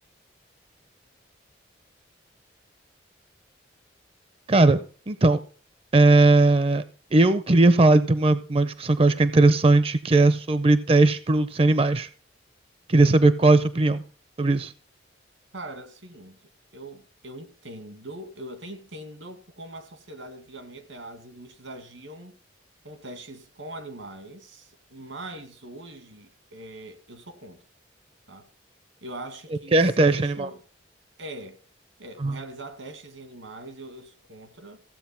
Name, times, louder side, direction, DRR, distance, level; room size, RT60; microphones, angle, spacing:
voice 1, 4.5-5.4 5.9-6.8 7.1-12.1 12.9-14.0 14.4-14.7 29.7-30.5 32.2-32.4, right 2 dB, 30° right, 0.5 m, -19 dB
voice 2, 15.5-16.4 16.7-22.4 22.8-27.6 28.3-28.5 29.0-30.6 31.2-31.6 32.0-34.8, right 1 dB, 80° right, 2.0 m, -42 dB
15.5 x 7.9 x 5.7 m
head